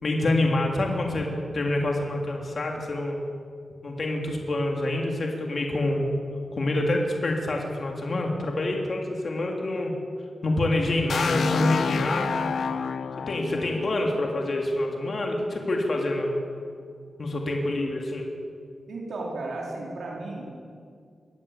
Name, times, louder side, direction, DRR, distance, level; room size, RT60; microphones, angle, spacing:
voice 1, 0.0-3.2 3.8-6.1 6.5-9.9 10.4-12.4 13.3-16.3 17.2-18.3, left 1 dB, 45° left, 1 dB, 3.1 m, -26 dB
sound 1, 11.1-14.9, left 6 dB, 70° left, 0.8 m, -29 dB
voice 2, 18.9-20.6, right 2 dB, 75° right, -3 dB, 4.6 m, -34 dB
22.5 x 17.0 x 8.7 m, 2.2 s
wide cardioid pair, 150°, 0 cm